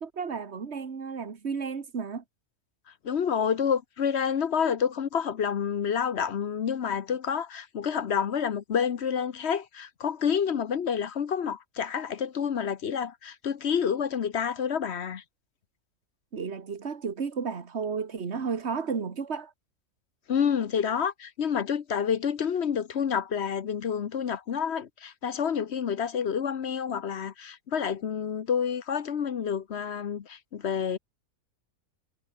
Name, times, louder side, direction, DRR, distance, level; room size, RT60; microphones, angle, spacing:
voice 1, 0.0-2.2 16.3-19.5, right 5 dB, 50° right, 2.0 m, -33 dB
voice 2, 3.0-15.2 20.3-31.0, left 7 dB, 50° left, 1.1 m, -28 dB
omnidirectional pair, 1.5 m